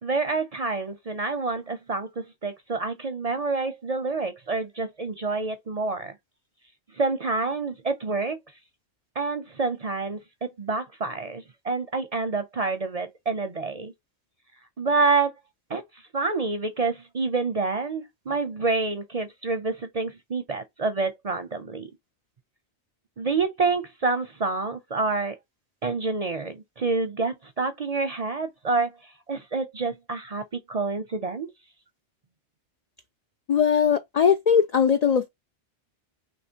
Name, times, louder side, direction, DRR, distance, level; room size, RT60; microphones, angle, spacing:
voice 1, 0.0-6.1 6.9-8.4 9.2-10.2 10.6-13.9 14.8-15.3 15.7-21.9 23.2-25.3 25.8-31.5, right 3 dB, 45° right, 0.5 m, -28 dB
voice 2, 33.5-35.3, left 7 dB, 65° left, 0.4 m, -20 dB
3.1 x 3.1 x 4.4 m
omnidirectional pair, 1.2 m